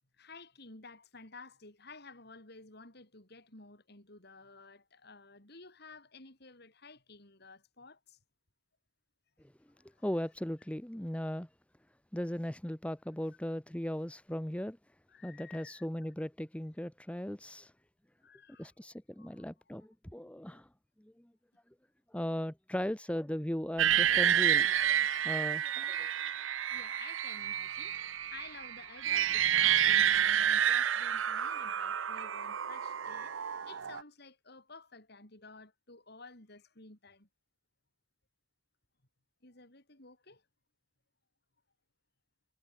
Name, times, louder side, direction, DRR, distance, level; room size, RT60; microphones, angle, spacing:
voice 1, 0.2-8.2 9.7-10.1 15.1-15.9 18.2-18.7 19.2-19.5 19.8-19.9 20.4-20.6 25.0-25.5 26.7-33.4 33.7-37.3 39.4-40.4, left 3 dB, 55° left, 5.4 m, -53 dB
voice 2, 10.0-11.5 12.1-14.8 15.2-17.7 18.6-20.7 21.0-21.3 22.1-26.1, equal, 5° left, 0.9 m, -38 dB
sound 1, 23.8-34.0, right 9 dB, 80° right, 0.7 m, -29 dB
head